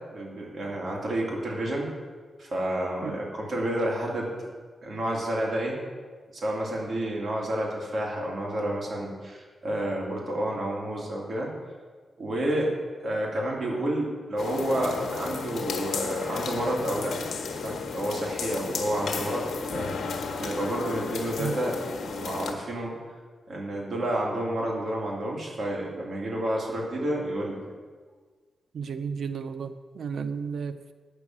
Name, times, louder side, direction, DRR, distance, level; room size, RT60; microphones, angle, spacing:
voice 1, 0.0-1.9 2.4-4.3 4.8-5.8 6.3-11.5 12.2-12.7 13.0-17.1 17.6-23.0 23.5-27.6, right 1 dB, 50° right, -2 dB, 2.7 m, -30 dB
sound 1, 14.4-22.5, left 5 dB, 85° left, 1.0 m, -33 dB
voice 2, 28.7-30.9, right 6 dB, 75° right, 10 dB, 0.4 m, -33 dB
8.8 x 6.2 x 7.2 m, 1.5 s
cardioid pair, 100°, 0 cm